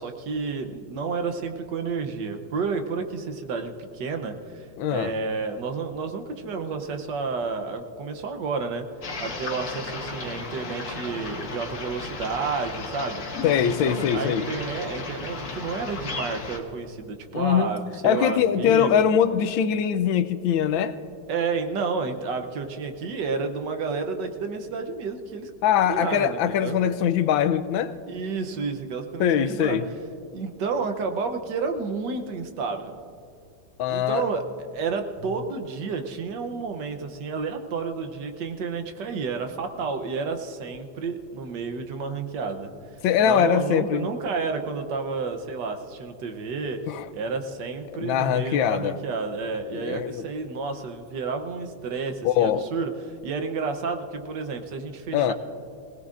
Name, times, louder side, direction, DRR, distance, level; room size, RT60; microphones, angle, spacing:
voice 1, 0.0-4.7 4.9-8.8 9.2-13.2 13.6-19.0 21.3-25.5 25.9-26.8 28.1-29.8 30.3-33.0 33.9-34.4 34.7-42.7 43.2-46.8 47.1-52.9 53.2-55.3, right 4 dB, 70° right, 1.4 m, -30 dB
voice 2, 4.8-5.2 13.4-14.5 17.3-17.7 18.0-21.0 25.6-28.0 29.2-29.9 33.8-34.3 43.0-44.1 46.9-47.1 48.0-49.0 49.7-50.3 52.2-52.7 55.1-55.3, left 9 dB, 80° left, 1.4 m, -22 dB
sound 1, 9.0-16.6, left 3 dB, 50° left, 1.8 m, -35 dB
20.5 x 18.0 x 2.5 m
omnidirectional pair, 2.1 m